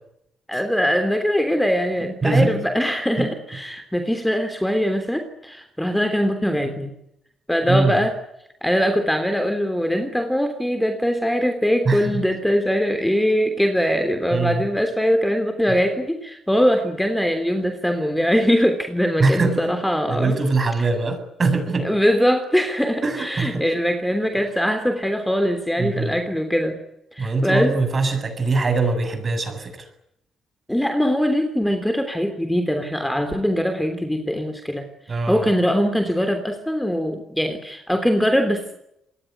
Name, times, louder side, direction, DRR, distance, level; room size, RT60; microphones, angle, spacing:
voice 1, 0.5-6.9 7.5-8.1 8.6-20.4 20.8-20.9 21.8-26.8 27.1-27.8 30.7-38.7, equal, 5° left, 7 dB, 3.3 m, -22 dB
voice 2, 2.2-2.5 7.7-7.9 11.9-12.2 14.3-14.6 19.2-19.5 20.1-21.9 23.0-23.6 25.8-26.2 27.2-29.8 35.1-35.4, right 3 dB, 30° right, 7 dB, 7.6 m, -22 dB
27.0 x 20.5 x 9.5 m, 0.80 s
cardioid pair, 115°, 0 cm